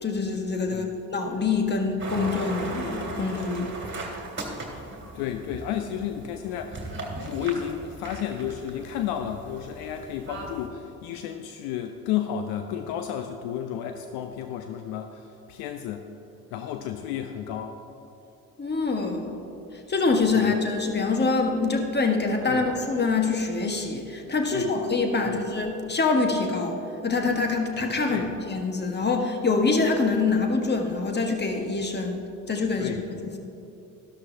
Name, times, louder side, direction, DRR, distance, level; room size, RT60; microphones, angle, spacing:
voice 1, 0.0-3.7 18.6-19.4 19.9-32.9 33.2-33.4, left 3 dB, 25° left, 3 dB, 1.5 m, -25 dB
sound 1, 2.0-10.7, right 2 dB, 25° right, 2.4 m, -37 dB
voice 2, 5.1-16.1 16.5-17.8 20.3-20.6 22.5-22.7 24.5-24.8 25.2-25.5 28.0-28.3 32.8-33.0, left 9 dB, 60° left, 7 dB, 0.7 m, -32 dB
13.0 x 12.5 x 2.8 m, 2.9 s
hypercardioid pair, 55°, 42 cm